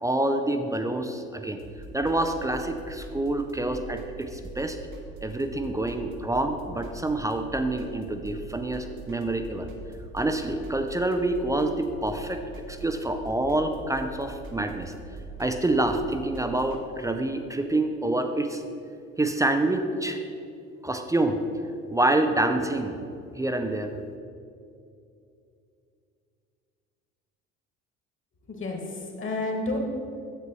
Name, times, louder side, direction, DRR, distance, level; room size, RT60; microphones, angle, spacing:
voice 1, 0.0-1.6 1.9-4.8 5.2-9.7 10.1-12.4 12.7-14.9 15.4-18.6 19.2-20.2 20.8-21.4 21.9-23.0 23.3-23.9, right 2 dB, 10° right, 6 dB, 0.4 m, -27 dB
sound 1, 1.6-16.8, right 3 dB, 60° right, 1.1 m, -43 dB
voice 2, 28.5-29.8, left 2 dB, 30° left, 1 dB, 1.6 m, -30 dB
9.7 x 8.0 x 3.0 m, 2.5 s
figure-of-eight pair, 55°, 40 cm